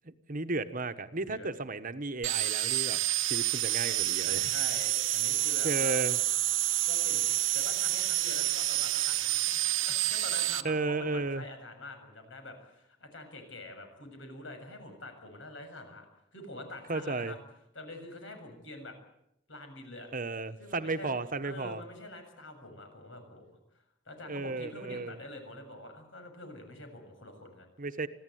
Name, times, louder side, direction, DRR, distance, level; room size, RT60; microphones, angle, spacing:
voice 1, 0.0-3.0 3.2-4.5 5.6-6.2 10.6-11.4 16.9-17.3 20.1-21.8 24.3-25.2 27.8-28.1, right 3 dB, 45° right, 10 dB, 1.2 m, -34 dB
voice 2, 1.1-1.5 4.3-6.0 6.8-7.3 7.5-16.1 16.3-17.4 17.7-19.0 19.5-20.1 20.6-21.1 21.4-23.6 24.1-27.7, left 2 dB, 75° left, 6 dB, 7.2 m, -46 dB
sound 1, 2.2-10.6, right 14 dB, 90° right, 1.2 m, -29 dB
25.5 x 16.0 x 9.4 m, 0.80 s
head